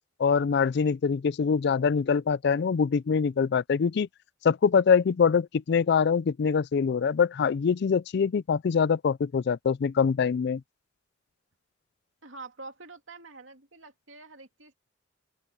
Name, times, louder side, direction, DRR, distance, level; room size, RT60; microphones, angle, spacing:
voice 1, 0.2-4.1 4.4-10.6, left 6 dB, 60° left, 0.4 m, -24 dB
voice 2, 12.2-14.8, right 3 dB, 75° right, 2.4 m, -46 dB
open air
head